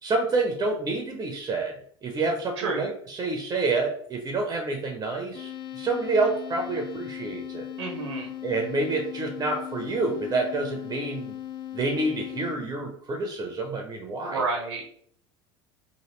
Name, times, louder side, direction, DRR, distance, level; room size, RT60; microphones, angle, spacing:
voice 1, 0.0-1.7 2.0-7.7 8.4-11.3 11.7-14.4, right 3 dB, 25° right, 3 dB, 0.5 m, -28 dB
sound 1, 5.3-12.6, left 11 dB, 35° left, 0.3 m, -38 dB
voice 2, 7.8-8.3 14.3-14.9, right 3 dB, 80° right, 0 dB, 0.6 m, -29 dB
3.0 x 2.5 x 3.0 m, 0.64 s
hypercardioid pair, 85°, 15 cm